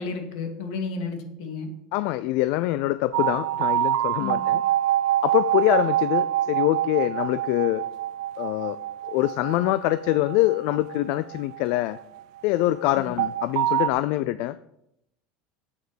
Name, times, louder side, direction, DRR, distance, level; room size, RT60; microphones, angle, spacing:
voice 1, 0.0-1.7 4.2-4.4 12.9-13.2, left 4 dB, 75° left, 4 dB, 2.3 m, -32 dB
voice 2, 1.9-4.6 5.2-7.8 8.4-8.8 9.1-12.0 12.4-14.6, left 16 dB, 55° left, 14 dB, 0.4 m, -24 dB
sound 1, 3.1-12.2 13.2-13.9, right 12 dB, 70° right, 0.5 m, -26 dB
8.4 x 8.3 x 6.8 m, 0.81 s
cardioid pair, 165°, 3 cm